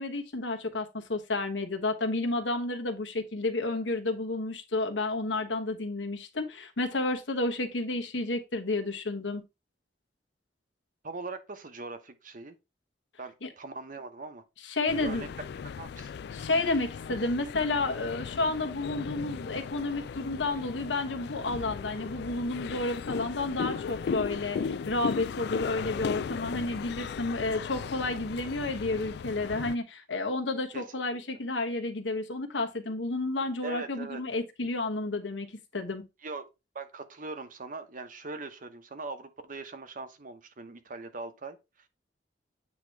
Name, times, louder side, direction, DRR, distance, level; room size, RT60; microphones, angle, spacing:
voice 1, 0.0-9.4 13.4-13.5 14.6-15.2 16.3-35.5 35.7-36.0, left 2 dB, 85° left, 1.3 m, -31 dB
voice 2, 11.0-12.5 13.2-14.4 15.0-15.3 15.8-16.1 30.7-30.8 33.6-34.2 36.2-36.5 36.7-41.9, right 3 dB, 50° right, 0.9 m, -41 dB
sound 1, 14.9-29.8, left 6 dB, 65° left, 0.3 m, -37 dB
8.5 x 3.0 x 4.5 m
head